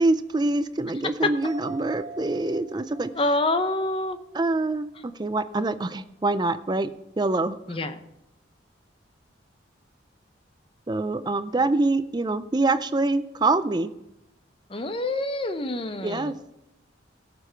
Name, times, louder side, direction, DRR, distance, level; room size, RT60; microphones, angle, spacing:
voice 1, 0.0-3.1 4.3-4.9 5.2-6.9 7.2-7.6 10.9-13.9 16.0-16.3, right 2 dB, 20° right, 12 dB, 0.4 m, -25 dB
sound 1, 1.4-5.1 5.5-5.6, right 3 dB, 40° right, 3.2 m, -44 dB
voice 2, 3.1-4.2 7.7-8.0 14.7-16.3, left 2 dB, 30° left, 10 dB, 0.6 m, -26 dB
16.0 x 6.9 x 4.5 m, 0.90 s
head